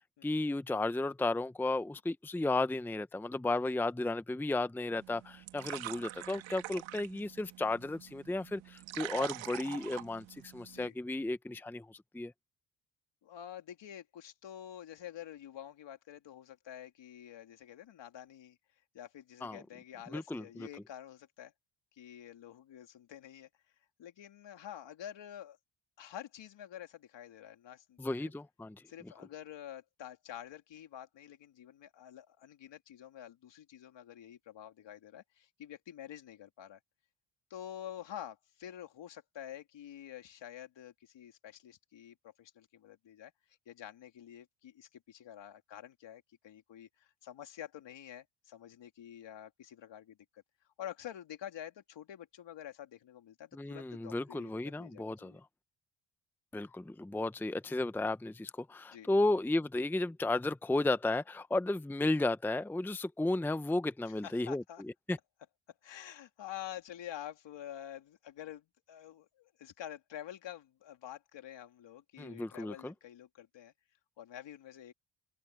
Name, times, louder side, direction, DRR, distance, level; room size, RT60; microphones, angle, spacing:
voice 1, 0.2-12.3 19.4-19.6 20.1-20.7 28.0-28.7 29.0-29.1 53.5-55.4 56.5-64.6 65.1-65.2 72.2-72.9, left 2 dB, 5° left, 0.7 m, -34 dB
sound 1, 4.9-10.9, right 15 dB, 90° right, 1.5 m, -45 dB
voice 2, 13.2-18.6 18.9-21.5 21.9-23.5 24.0-25.6 26.0-28.3 28.9-36.8 37.5-43.3 43.7-50.4 50.8-55.4 58.9-59.1 64.1-64.8 65.8-73.7 74.2-74.9, left 11 dB, 70° left, 3.1 m, -48 dB
open air
cardioid pair, 95°, 45 cm